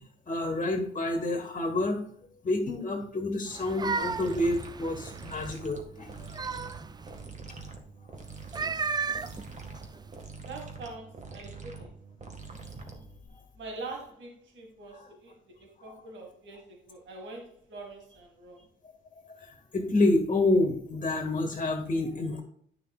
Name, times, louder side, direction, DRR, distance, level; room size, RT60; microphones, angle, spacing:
voice 1, 0.3-2.0 2.4-6.1 9.6-9.7 15.0-15.1 15.8-15.9 19.3-22.4, left 2 dB, 35° left, 3 dB, 1.7 m, -28 dB
sound 1, 3.5-5.6 6.0-7.2 8.4-10.2, right 5 dB, 20° right, 0.4 m, -35 dB
sound 2, 4.0-13.3, right 4 dB, 35° right, 1.7 m, -45 dB
voice 2, 10.5-11.9 13.6-18.6, right 3 dB, 70° right, 1 dB, 1.9 m, -44 dB
10.0 x 6.1 x 2.4 m, 0.64 s
cardioid pair, 90°, 20 cm